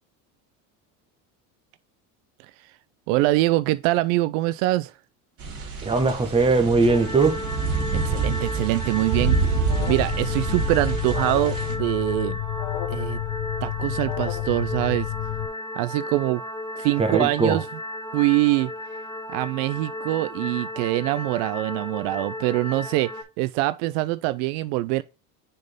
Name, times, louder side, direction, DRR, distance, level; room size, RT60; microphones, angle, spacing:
voice 1, 3.1-4.9 7.9-9.4 9.9-12.4 12.9-13.2 13.6-15.1 15.8-16.4 16.8-17.6 18.1-18.7 19.3-25.0, right 18 dB, 75° right, 0.5 m, -24 dB
sound 1, 5.4-11.7, right 4 dB, 35° right, 3.3 m, -27 dB
voice 2, 5.8-7.4 17.0-17.6, right 3 dB, 15° right, 1.3 m, -20 dB
sound 2, 6.9-23.2, left 1 dB, 10° left, 1.3 m, -34 dB
Alarm, 9.6-15.5, left 15 dB, 70° left, 0.7 m, -30 dB
6.4 x 4.4 x 3.6 m
supercardioid pair, 125°, 41 cm